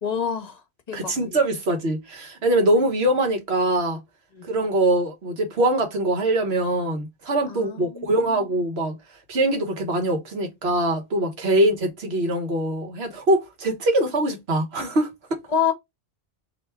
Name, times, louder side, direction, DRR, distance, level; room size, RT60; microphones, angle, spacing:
voice 1, 0.0-0.6 0.9-1.1 4.3-4.5 7.5-8.4 15.5-15.7, left 7 dB, 45° left, 0.7 m, -27 dB
voice 2, 0.9-4.0 4.5-9.0 9.3-15.4, right 1 dB, 80° right, 1.4 m, -23 dB
3.4 x 2.9 x 4.3 m
omnidirectional pair, 1.1 m